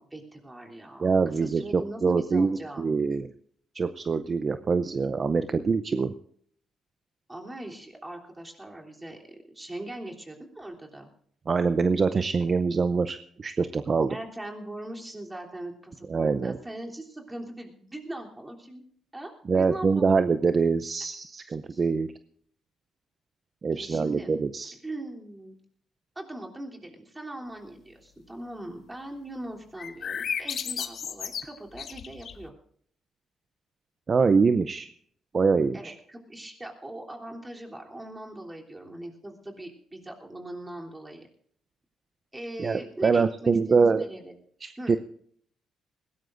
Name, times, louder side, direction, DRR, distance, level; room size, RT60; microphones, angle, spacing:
voice 1, 0.0-1.1 1.4-2.9 7.3-11.1 14.1-18.8 19.1-20.2 21.5-21.8 23.7-24.3 24.8-25.6 26.1-32.5 35.7-41.3 42.3-44.3 44.8-44.9, right 1 dB, 15° right, 0 dB, 3.2 m, -40 dB
voice 2, 1.0-3.3 3.7-6.1 11.5-14.2 16.1-16.6 19.5-22.1 23.6-24.7 34.1-34.9 35.3-35.9 42.6-44.0 44.6-45.0, right 4 dB, 40° right, 11 dB, 0.6 m, -24 dB
sound 1, 29.8-32.5, left 7 dB, 60° left, 1.0 m, -34 dB
20.5 x 17.0 x 2.6 m, 0.62 s
cardioid pair, 90°, 0 cm